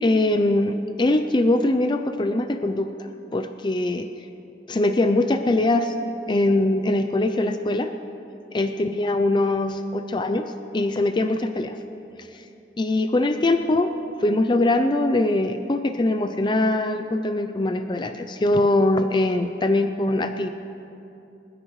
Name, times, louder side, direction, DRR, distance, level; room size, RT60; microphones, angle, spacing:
voice 1, 0.0-4.1 4.7-7.9 8.5-10.4 10.7-11.8 12.2-12.4 12.8-13.9 14.2-20.5, left 2 dB, 25° left, 8 dB, 0.4 m, -22 dB
28.0 x 9.9 x 3.2 m, 2.8 s
head